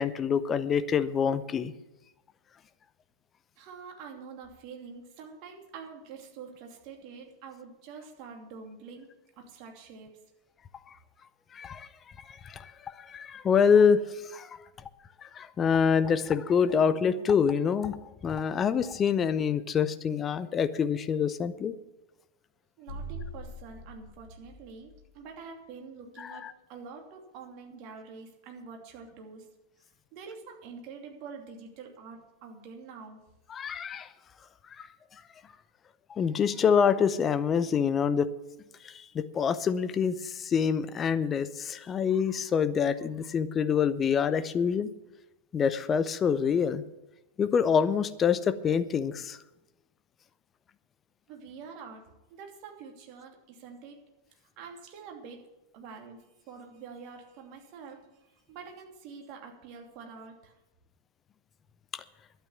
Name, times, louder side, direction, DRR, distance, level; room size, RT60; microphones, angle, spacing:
voice 1, 0.0-1.7 11.5-11.9 12.3-14.6 15.2-18.0 18.2-21.7 26.2-26.5 33.5-34.1 34.8-34.9 36.1-38.3 38.8-44.9 45.5-46.8 47.4-49.4 61.9-62.0, left 7 dB, 25° left, 13 dB, 0.7 m, -26 dB
voice 2, 3.6-9.1 9.4-10.1 22.8-29.5 30.1-33.2 51.3-52.0 52.3-54.0 54.6-55.4 55.7-56.2 56.5-60.5, right 5 dB, 45° right, 2 dB, 2.7 m, -46 dB
sound 1, 22.9-25.3, right 1 dB, 55° left, 3.6 m, -43 dB
12.0 x 9.1 x 7.0 m, 0.98 s
figure-of-eight pair, 95°, 0 cm